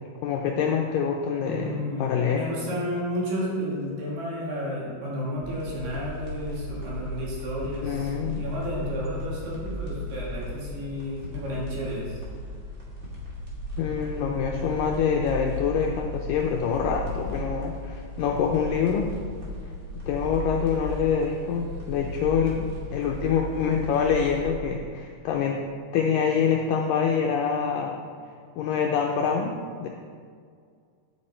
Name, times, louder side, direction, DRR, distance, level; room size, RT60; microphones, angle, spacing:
voice 1, 0.2-2.4 7.8-8.5 13.8-19.1 20.1-25.6 25.9-28.0 28.6-29.9, left 6 dB, 85° left, 1 dB, 2.0 m, -26 dB
voice 2, 1.4-12.2, equal, 75° right, -6 dB, 4.5 m, -32 dB
sound 1, 5.4-24.5, left 1 dB, 25° right, 2.3 m, -36 dB
9.7 x 9.6 x 4.4 m, 2.1 s
omnidirectional pair, 4.7 m